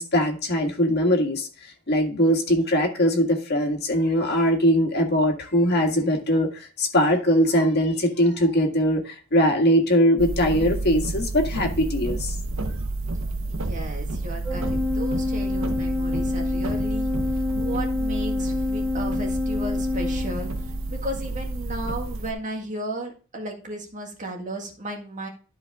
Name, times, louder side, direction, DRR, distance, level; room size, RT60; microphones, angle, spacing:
voice 1, 0.0-1.5 1.9-6.5 6.8-12.3, equal, 50° left, 2 dB, 1.8 m, -21 dB
sound 1, 10.2-22.3, right 2 dB, 70° right, 0.9 m, -30 dB
voice 2, 13.5-17.1 17.6-25.3, right 1 dB, 35° right, 1 dB, 1.8 m, -34 dB
Organ, 14.4-21.0, left 3 dB, ahead, 1.6 m, -28 dB
12.5 x 5.1 x 3.6 m, 0.37 s
head